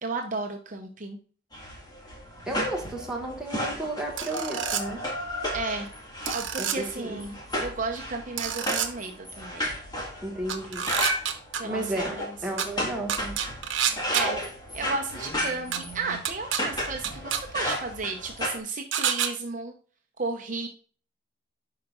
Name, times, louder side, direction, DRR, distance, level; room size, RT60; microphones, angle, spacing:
voice 1, 0.0-1.2 5.5-5.9 6.3-7.3 7.6-9.7 11.6-11.8 12.1-12.4 13.8-14.4 14.7-19.7 20.2-20.7, right 3 dB, 40° right, 3 dB, 0.8 m, -33 dB
sound 1, 1.5-18.6, equal, 20° left, 1.9 m, -33 dB
voice 2, 2.5-5.1 6.6-7.3 10.2-10.9 11.6-13.3, right 1 dB, 5° right, -1 dB, 1.6 m, -33 dB
sound 2, 4.2-4.8 6.3-6.8 8.4-8.9 10.5-11.6 12.6-12.7 13.1-14.2 15.7-15.8 16.2-16.6 17.0-17.4 18.9-19.3, right 8 dB, 75° right, 1.0 m, -28 dB
11.0 x 4.8 x 2.5 m, 0.42 s
head